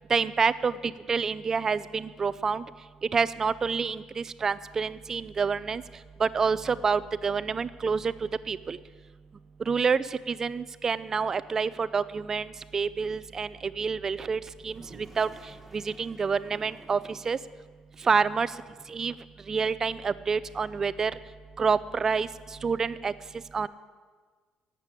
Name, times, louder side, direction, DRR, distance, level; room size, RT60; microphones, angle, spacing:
voice 1, 0.1-2.7 3.1-5.8 6.2-8.1 8.5-8.8 9.7-15.3 15.7-17.4 18.0-18.5 18.9-19.1 19.5-21.1 21.6-22.3 22.6-23.1 23.5-23.7, right 5 dB, 25° right, 17 dB, 0.4 m, -28 dB
Toilet flush, 14.4-17.5, right 2 dB, 5° right, 1.3 m, -52 dB
11.5 x 8.3 x 9.7 m, 1.5 s
cardioid pair, 170°, 2 cm